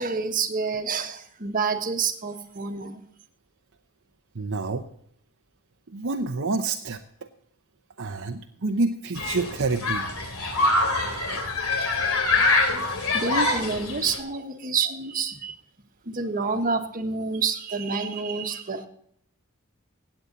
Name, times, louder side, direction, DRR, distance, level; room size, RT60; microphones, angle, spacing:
voice 1, 0.0-3.0 13.1-15.5 16.1-18.9, right 4 dB, 40° right, 4 dB, 1.5 m, -28 dB
voice 2, 4.3-4.8 5.9-7.0 8.0-10.1, right 3 dB, 60° right, 4 dB, 0.8 m, -28 dB
Human group actions, 9.2-14.2, left 3 dB, 70° left, 3.0 m, -24 dB
16.5 x 8.9 x 4.0 m, 0.68 s
head